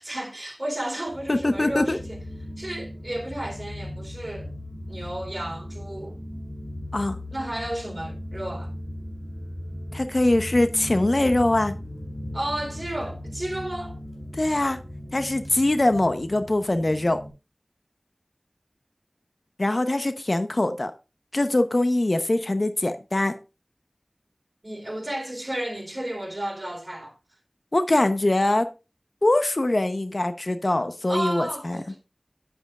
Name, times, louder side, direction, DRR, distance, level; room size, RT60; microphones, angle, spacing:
voice 1, 0.0-2.2 2.6-4.5 4.9-6.2 7.3-8.7 12.3-14.0 24.6-27.2 31.1-32.0, right 1 dB, 40° right, 3.8 m, -32 dB
sound 1, 1.1-17.3, left 1 dB, 20° left, 4.0 m, -37 dB
voice 2, 1.3-2.0 6.9-7.2 9.9-11.7 14.3-14.8 15.1-17.2 19.6-20.9 21.3-23.3 27.7-28.7 29.2-31.8, left 2 dB, 60° left, 0.8 m, -22 dB
9.8 x 8.4 x 2.4 m
wide cardioid pair, 40°, 0 cm